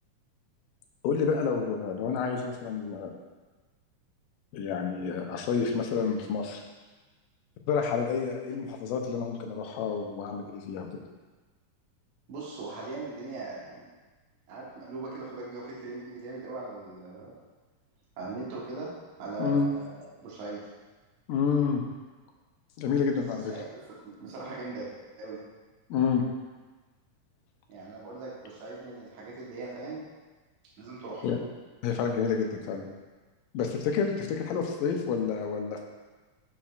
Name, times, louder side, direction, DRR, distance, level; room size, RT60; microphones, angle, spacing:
voice 1, 1.0-3.1 4.5-6.6 7.7-10.9 19.4-19.7 21.3-21.8 22.8-23.5 25.9-26.2 31.2-31.4 31.8-32.9 33.5-35.8, left 6 dB, 80° left, 2 dB, 2.1 m, -29 dB
voice 2, 12.3-13.8 14.5-17.3 18.2-18.9 19.2-20.6 23.3-23.7 24.0-24.9 25.2-25.4 27.7-30.0 30.8-31.3, right 3 dB, 60° right, -6 dB, 2.0 m, -39 dB
7.4 x 5.8 x 2.4 m, 1.3 s
omnidirectional pair, 4.1 m